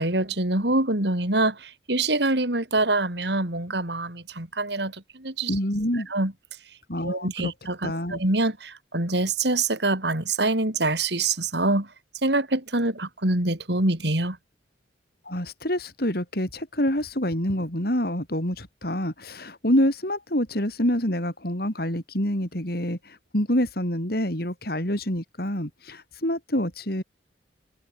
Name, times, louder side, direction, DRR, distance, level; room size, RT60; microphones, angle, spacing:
voice 1, 0.0-5.5 6.1-6.3 7.0-11.9 12.2-14.4, right 2 dB, 65° right, 3.5 m, -25 dB
voice 2, 5.5-6.1 6.9-7.5 7.8-8.2 15.3-27.0, equal, 55° left, 5.5 m, -27 dB
head